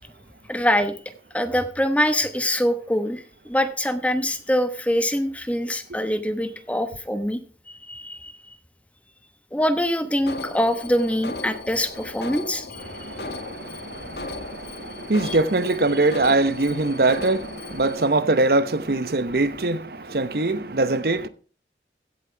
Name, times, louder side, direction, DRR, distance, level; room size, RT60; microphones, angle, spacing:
voice 1, 0.5-1.0 1.3-3.2 3.5-7.4 7.7-8.3 9.5-12.6 15.2-15.4, equal, 10° left, 1.1 m, -24 dB
Alarm, 10.3-18.1, left 3 dB, 70° left, 1.7 m, -36 dB
voice 2, 12.8-21.3, right 2 dB, 60° right, 0.9 m, -23 dB
16.0 x 7.4 x 4.5 m
head